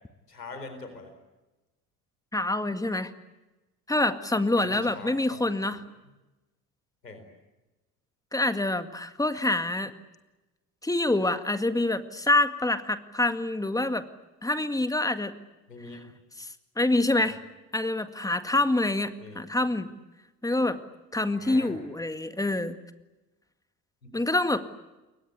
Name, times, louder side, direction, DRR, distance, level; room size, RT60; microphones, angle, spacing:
voice 1, 0.3-1.1 4.5-5.4 5.7-5.8 7.0-7.2 15.7-16.0 17.2-17.3 19.2-19.4 21.3-21.7 24.0-24.1, left 3 dB, 85° left, 7 dB, 4.4 m, -43 dB
voice 2, 2.3-3.1 3.9-5.8 8.3-9.9 10.8-14.0 14.4-15.3 16.4-16.5 16.8-17.4 17.7-19.9 20.4-20.8 21.1-22.8 24.1-24.6, left 2 dB, 5° left, 10 dB, 1.9 m, -26 dB
29.0 x 23.0 x 8.3 m, 1.1 s
figure-of-eight pair, 60°, 47 cm